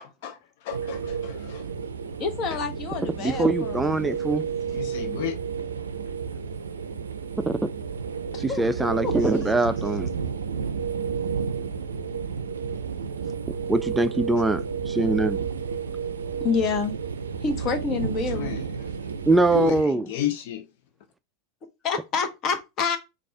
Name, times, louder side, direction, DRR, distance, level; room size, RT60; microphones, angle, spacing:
voice 1, 0.0-1.7 2.5-2.6 4.7-5.4 18.3-18.9 19.5-20.7, left 12 dB, 60° left, 0.5 m, -33 dB
sound 1, 0.7-19.8, right 6 dB, 80° right, 0.4 m, -31 dB
voice 2, 2.2-4.1 8.3-9.1 16.4-16.9 17.4-18.6 21.8-23.0, left 5 dB, 40° left, 1.0 m, -28 dB
voice 3, 3.2-4.4 7.5-7.6 8.4-10.1 13.7-15.4 19.3-20.1, right 2 dB, 10° right, 0.3 m, -23 dB
4.1 x 2.4 x 4.4 m
figure-of-eight pair, 90°, 0 cm